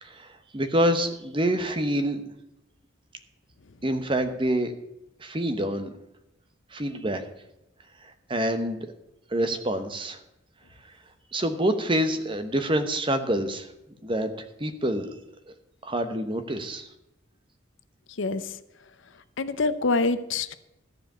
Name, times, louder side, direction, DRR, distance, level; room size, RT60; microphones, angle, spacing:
voice 1, 0.0-2.2 3.8-4.7 5.2-5.9 6.7-7.2 8.0-8.9 9.3-10.2 11.3-13.7 14.0-14.3 14.6-15.2 15.8-16.9, right 1 dB, 25° right, 8 dB, 0.9 m, -26 dB
voice 2, 18.2-18.6 19.4-20.6, left 3 dB, 75° left, 12 dB, 0.7 m, -26 dB
14.0 x 4.9 x 9.0 m, 0.86 s
head